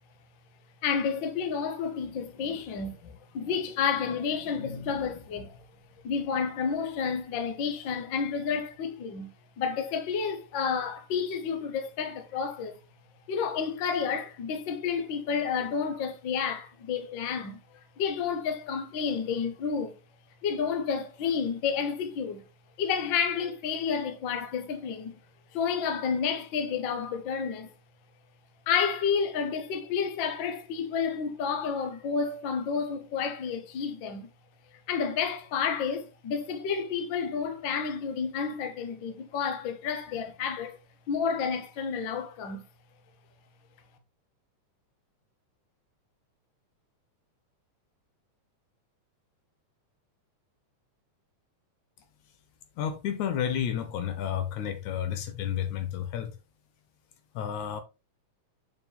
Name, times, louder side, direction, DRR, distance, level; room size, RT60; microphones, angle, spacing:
voice 1, 0.8-5.6 6.0-9.3 9.6-12.8 13.3-19.9 20.4-22.4 22.8-25.2 25.5-27.7 28.7-34.3 34.9-40.8 41.1-42.6, left 6 dB, 60° left, 1.3 m, -30 dB
voice 2, 52.8-56.3 57.4-57.8, left 9 dB, 75° left, 2.1 m, -31 dB
6.8 x 4.5 x 3.5 m
omnidirectional pair, 3.6 m